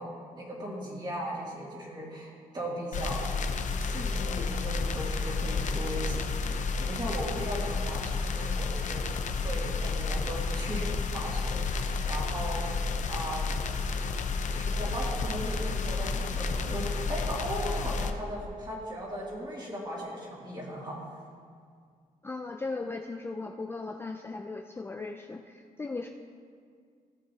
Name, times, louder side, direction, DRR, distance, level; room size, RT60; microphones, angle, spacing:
voice 1, 0.0-9.0 9.4-10.9 11.1-12.6 13.1-13.6 14.5-21.0, equal, 30° right, -4 dB, 2.5 m, -38 dB
sound 1, 2.9-18.1, left 4 dB, 55° left, 0.6 m, -31 dB
voice 2, 22.2-26.1, left 3 dB, 15° left, 3 dB, 0.4 m, -37 dB
16.5 x 7.4 x 2.8 m, 2.1 s
cardioid pair, 130°, 15 cm